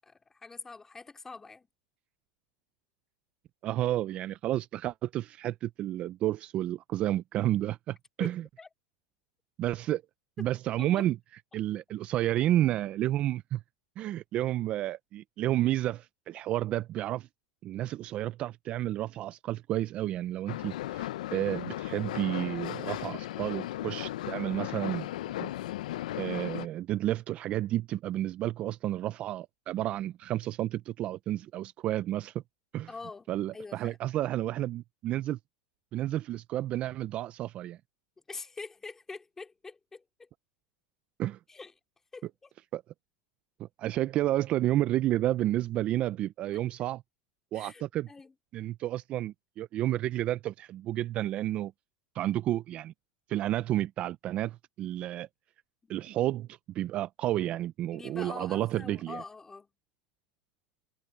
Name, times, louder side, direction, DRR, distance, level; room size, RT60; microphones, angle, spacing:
voice 1, 0.0-1.7 8.2-8.7 10.8-11.1 32.9-34.0 38.3-40.3 41.5-41.7 42.1-42.5 46.5-46.6 47.5-48.3 55.8-55.9 57.9-59.7, left 4 dB, 10° left, 2.7 m, -45 dB
voice 2, 3.6-8.4 9.6-10.0 10.4-11.2 11.5-13.6 14.0-17.3 17.6-25.1 25.4-25.5 26.2-32.4 32.7-32.9 33.3-35.4 35.9-37.8 41.2-41.4 42.7-42.8 43.6-47.0 47.5-48.1 48.5-51.7 52.1-52.9 53.3-55.3 55.9-59.2, right 13 dB, 30° right, 0.3 m, -31 dB
sound 1, 20.5-26.7, left 14 dB, 85° left, 0.6 m, -36 dB
supercardioid pair, 155°, 4 cm